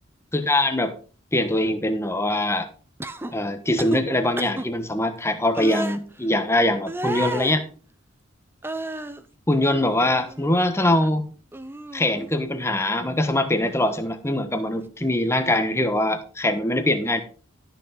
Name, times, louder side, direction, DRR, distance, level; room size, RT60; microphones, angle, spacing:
voice 1, 0.3-1.0 1.3-2.7 3.3-7.6 9.5-11.2 11.9-17.2, left 1 dB, 15° left, 8 dB, 1.2 m, -23 dB
sound 1, 3.0-3.3 3.8-4.0 4.4-4.7 5.5-6.0 6.9-7.6 8.6-9.2 9.7-10.5 10.8-11.1 11.5-12.3 13.6-13.8, right 1 dB, 10° right, 0.7 m, -32 dB
13.0 x 6.9 x 3.9 m, 0.38 s
head